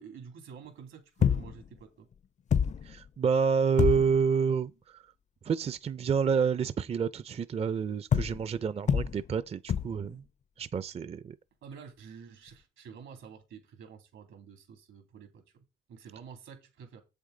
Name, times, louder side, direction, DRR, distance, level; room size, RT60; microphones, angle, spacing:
voice 1, 0.0-2.1 11.6-15.6 15.9-17.0, right 6 dB, 80° right, 2.7 m, -49 dB
sound 1, 1.2-1.7 2.1-2.2 2.5-3.1 3.8-4.3 8.1-8.6 8.9-9.4 9.7-10.1 12.5-12.6, left 7 dB, 35° left, 0.4 m, -28 dB
voice 2, 2.8-5.0 5.4-10.2 10.6-11.4, right 6 dB, 30° right, 0.4 m, -28 dB
7.9 x 6.9 x 3.8 m
cardioid pair, 90°, 20 cm